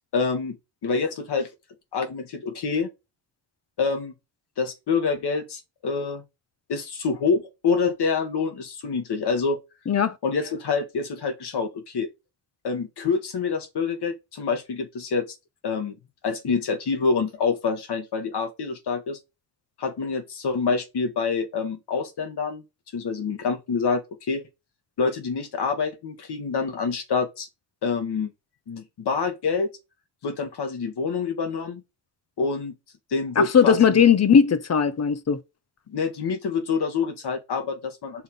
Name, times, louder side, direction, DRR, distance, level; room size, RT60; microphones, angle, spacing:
voice 1, 0.1-0.6 0.8-1.5 1.9-2.9 3.8-4.1 4.6-6.2 6.7-9.6 10.2-12.1 12.6-15.3 15.6-16.0 16.2-19.2 19.8-22.6 22.9-24.4 25.0-27.5 27.8-28.3 28.7-29.7 30.2-31.8 32.4-32.7 33.1-34.1 35.9-38.2, left 5 dB, 60° left, 1.9 m, -26 dB
voice 2, 9.9-10.2 33.4-35.4, left 7 dB, 35° left, 0.8 m, -18 dB
5.6 x 3.7 x 5.5 m
cardioid pair, 105°, 45 cm